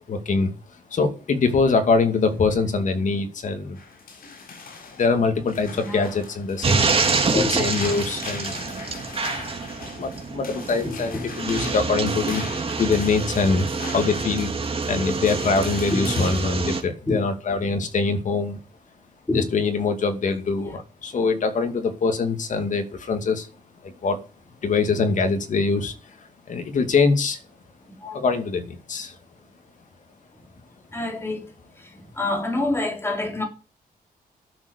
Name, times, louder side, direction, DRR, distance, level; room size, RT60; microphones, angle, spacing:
voice 1, 0.1-0.5 0.9-3.8 5.0-7.0 7.3-8.5 9.9-12.5 12.8-18.6 19.3-23.5 23.8-24.2 24.6-25.9 26.5-27.4 28.1-29.2, left 4 dB, 55° left, 2.5 m, -23 dB
sound 1, 3.7-16.8, left 4 dB, 70° left, 5.5 m, -40 dB
sound 2, 6.6-16.8, right 4 dB, 35° right, 2.6 m, -27 dB
voice 2, 10.8-11.2 16.0-16.3 17.1-17.2 19.3-19.4 28.0-28.2 30.9-31.4 31.8-31.9 32.2-33.4, left 2 dB, 15° left, 3.5 m, -27 dB
12.0 x 7.1 x 8.2 m
cardioid pair, 125°, 15 cm